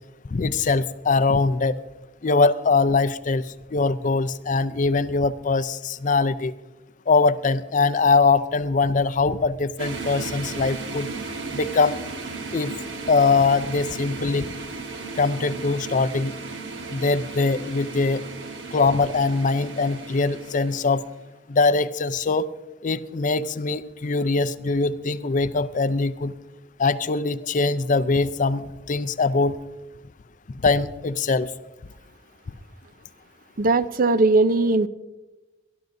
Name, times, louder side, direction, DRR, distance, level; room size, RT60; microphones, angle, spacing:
voice 1, 0.3-1.8 2.2-3.4 3.7-6.5 7.1-11.1 11.5-12.0 12.5-12.8 13.1-14.5 15.2-16.3 16.9-18.2 18.7-21.0 21.5-22.5 22.8-26.3 26.8-29.6 30.6-31.5, left 4 dB, 45° left, 14 dB, 0.5 m, -22 dB
sound 1, 9.8-21.1, right 3 dB, 80° right, 1.5 m, -35 dB
voice 2, 33.6-34.9, right 3 dB, 45° right, 15 dB, 0.5 m, -19 dB
22.5 x 13.5 x 2.6 m, 1.1 s
head